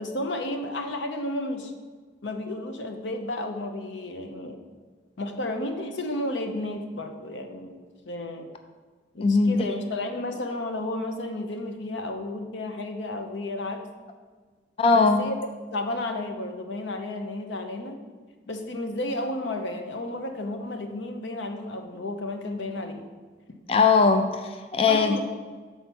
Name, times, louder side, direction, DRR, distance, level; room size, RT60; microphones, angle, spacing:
voice 1, 0.0-1.7 2.2-4.6 5.2-7.8 8.1-8.5 9.1-13.9 14.9-18.0 18.5-23.1 24.8-25.2, left 1 dB, 85° left, 6 dB, 0.7 m, -32 dB
voice 2, 9.2-9.7 14.8-15.2 23.7-25.2, left 4 dB, 30° left, 7 dB, 0.3 m, -20 dB
5.7 x 4.2 x 6.1 m, 1.4 s
head